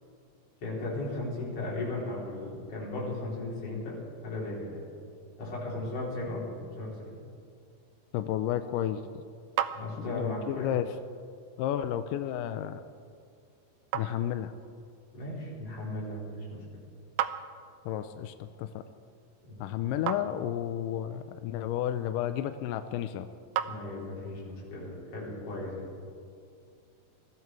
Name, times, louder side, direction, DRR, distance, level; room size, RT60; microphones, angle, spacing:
voice 1, 0.6-4.0 4.2-4.8 5.4-7.2 9.7-10.7 15.1-16.6 19.5-19.8 23.6-25.8, left 2 dB, 45° left, -6 dB, 5.0 m, -36 dB
voice 2, 8.1-9.1 10.0-11.0 11.6-12.8 13.9-14.5 17.9-18.8 19.6-23.3, left 11 dB, 80° left, 9 dB, 2.1 m, -32 dB
sound 1, 9.2-24.4, right 10 dB, 80° right, 1.8 m, -41 dB
21.5 x 14.0 x 4.6 m, 2.3 s
omnidirectional pair, 3.9 m